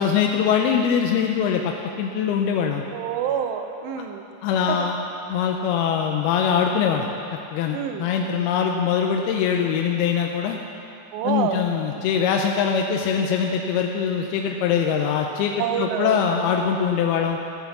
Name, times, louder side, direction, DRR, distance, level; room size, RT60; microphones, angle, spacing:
voice 1, 0.0-2.8 4.0-4.1 4.4-5.0 5.3-7.1 7.5-10.6 11.2-17.4, left 7 dB, 80° left, 2 dB, 2.4 m, -22 dB
voice 2, 2.9-4.2 4.7-4.9 7.7-8.1 11.1-11.6 15.6-16.2, right 8 dB, 85° right, 6 dB, 2.9 m, -27 dB
14.5 x 7.9 x 7.1 m, 2.8 s
omnidirectional pair, 4.8 m